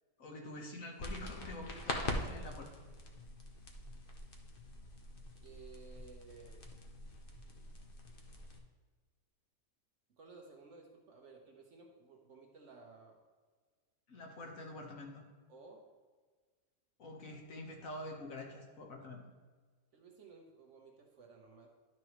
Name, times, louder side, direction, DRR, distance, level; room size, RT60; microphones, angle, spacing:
voice 1, 0.2-2.7 14.1-15.3 17.0-19.2, left 1 dB, 70° left, 1 dB, 1.6 m, -46 dB
sound 1, 1.0-8.6, left 2 dB, 45° left, 0.9 m, -44 dB
voice 2, 5.3-6.6 10.1-13.2 15.5-15.8 19.9-21.7, right 4 dB, 60° right, 1 dB, 1.2 m, -56 dB
11.0 x 6.0 x 3.1 m, 1.5 s
omnidirectional pair, 1.4 m